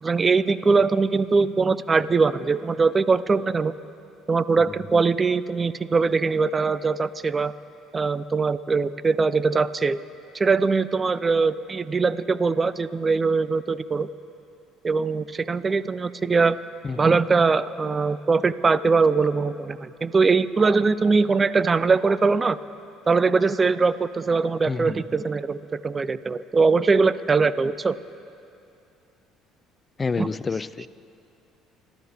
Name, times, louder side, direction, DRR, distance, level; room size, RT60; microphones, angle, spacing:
voice 1, 0.0-3.7 4.3-7.5 7.9-10.0 10.3-14.1 14.8-16.6 17.0-22.6 23.1-28.0 30.2-30.3, right 4 dB, 30° right, 16 dB, 0.5 m, -21 dB
voice 2, 16.8-17.1 24.7-25.0 30.0-30.9, left 4 dB, 30° left, 17 dB, 0.5 m, -28 dB
28.5 x 12.5 x 3.5 m, 2.6 s
supercardioid pair, 75°, 0 cm